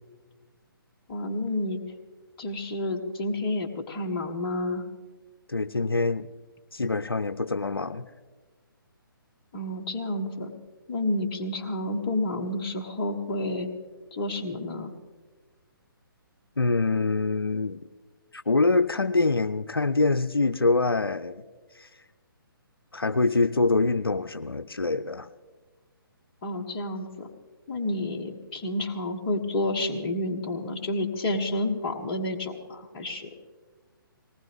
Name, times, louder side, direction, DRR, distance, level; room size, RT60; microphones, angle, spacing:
voice 1, 1.1-1.8 2.4-4.8 9.5-10.5 10.9-13.7 14.1-14.9 26.4-27.3 27.7-33.3, left 1 dB, 25° left, 2 dB, 1.4 m, -30 dB
voice 2, 5.5-6.3 6.7-8.1 16.6-17.8 18.3-21.4 21.8-21.9 22.9-25.3, left 3 dB, 85° left, 12 dB, 0.5 m, -25 dB
19.5 x 19.0 x 3.5 m, 1.3 s
figure-of-eight pair, 135°, 12 cm